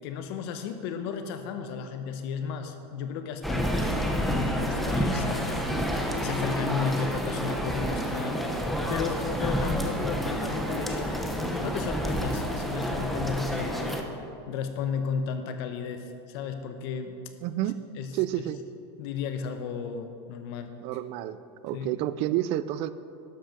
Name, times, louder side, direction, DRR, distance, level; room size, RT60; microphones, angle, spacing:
voice 1, 0.0-3.9 4.3-8.4 8.9-14.0 14.5-17.2 18.0-18.1 18.4-18.5 19.0-20.8 21.7-22.0, left 6 dB, 60° left, 7 dB, 0.9 m, -34 dB
sound 1, 3.4-14.0, equal, ahead, 0.8 m, -29 dB
voice 2, 17.4-17.8 18.1-18.6 20.8-21.4 21.6-22.9, right 13 dB, 40° right, 14 dB, 0.4 m, -29 dB
12.0 x 7.9 x 5.2 m, 2.6 s
supercardioid pair, 150°, 14 cm